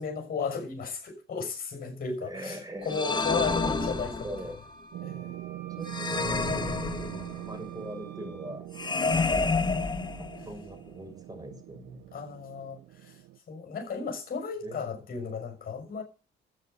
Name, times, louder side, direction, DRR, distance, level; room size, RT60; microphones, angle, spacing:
voice 1, 0.0-4.3 5.0-5.3 9.4-9.6 10.4-10.5 12.1-13.2 13.5-16.0, left 5 dB, 45° left, 6.7 m, -35 dB
voice 2, 2.2-4.6 5.8-8.6 10.4-12.1 14.6-15.0, right 1 dB, 20° right, 6.8 m, -41 dB
sound 1, 2.9-4.6 5.9-7.5 8.7-10.6, left 4 dB, 20° left, 1.6 m, -29 dB
Wind instrument woodwind instrument, 4.3-8.6, right 7 dB, 60° right, 6.2 m, -50 dB
sound 2, 4.9-13.4, right 16 dB, 90° right, 0.9 m, -42 dB
13.0 x 8.4 x 8.2 m
cardioid pair, 90°, 20 cm